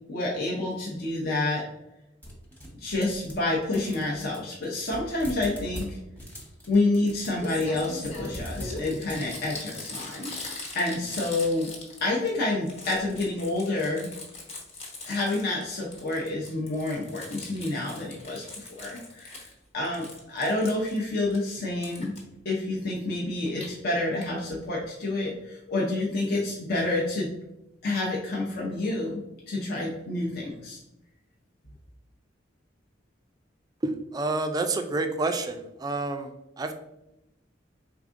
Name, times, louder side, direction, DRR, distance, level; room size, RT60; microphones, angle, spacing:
voice 1, 0.1-1.6 2.8-6.0 6.7-11.7 12.0-14.1 15.0-19.4 19.7-22.1 22.4-27.3 27.8-29.2 29.5-30.8, left 2 dB, 55° left, -4 dB, 0.7 m, -28 dB
sound 1, 2.2-3.5 3.7-9.8, equal, 10° left, 0.9 m, -41 dB
Crumpling crinkling, 7.1-7.2 7.4-12.3 12.6-15.6 15.9-19.5 19.8-21.4 21.8-22.2 23.3-23.7 24.2-24.3 24.5-24.6 24.8-24.9, left 2 dB, 30° left, 1.1 m, -41 dB
voice 2, 33.8-36.7, right 2 dB, 20° right, 7 dB, 0.3 m, -29 dB
4.8 x 3.5 x 2.5 m, 0.91 s
head